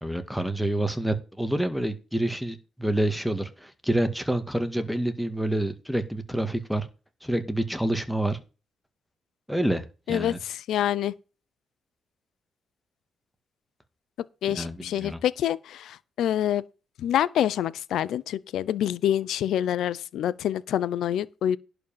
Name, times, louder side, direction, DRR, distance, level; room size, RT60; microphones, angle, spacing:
voice 1, 0.0-6.9 7.2-8.4 9.5-10.4 14.5-15.2, right 1 dB, ahead, 1.9 m, -28 dB
voice 2, 10.1-11.1 14.4-16.6 17.0-21.6, left 11 dB, 75° left, 0.7 m, -26 dB
11.0 x 5.1 x 7.4 m
cardioid pair, 90°, 0 cm